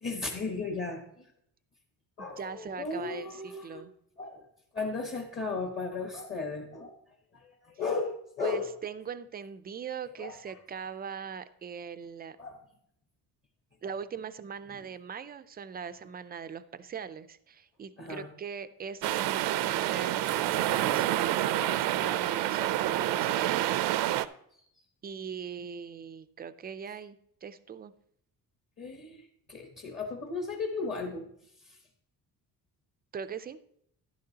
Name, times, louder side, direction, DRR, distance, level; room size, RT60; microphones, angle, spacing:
voice 1, 0.0-1.1 2.2-3.8 4.2-4.4 4.7-7.0 7.3-8.7 10.2-10.4 12.4-12.6 18.0-18.3 21.4-22.6 23.3-23.4 28.8-31.3 31.6-31.8, left 4 dB, 30° left, 2 dB, 1.1 m, -36 dB
voice 2, 2.2-3.9 8.4-12.4 13.8-23.7 25.0-27.9 33.1-33.6, right 7 dB, 25° right, 12 dB, 0.3 m, -41 dB
sound 1, 19.0-24.3, right 14 dB, 85° right, 0.6 m, -28 dB
11.5 x 10.5 x 2.8 m, 0.70 s
cardioid pair, 155°, 40 cm